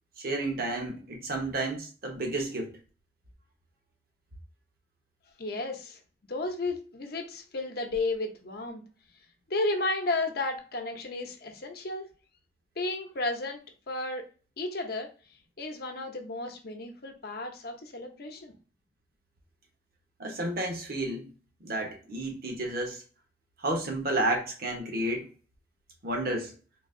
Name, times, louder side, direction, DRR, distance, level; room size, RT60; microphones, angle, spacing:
voice 1, 0.2-2.7 20.2-21.3 21.6-23.0 23.6-25.3 26.0-26.5, right 1 dB, 55° right, 1.0 m, -31 dB
voice 2, 5.4-6.0 6.3-8.8 9.5-12.1 12.8-13.6 13.9-14.2 14.6-15.1 15.6-18.5, left 2 dB, 60° left, 0.8 m, -33 dB
3.9 x 2.8 x 2.5 m
head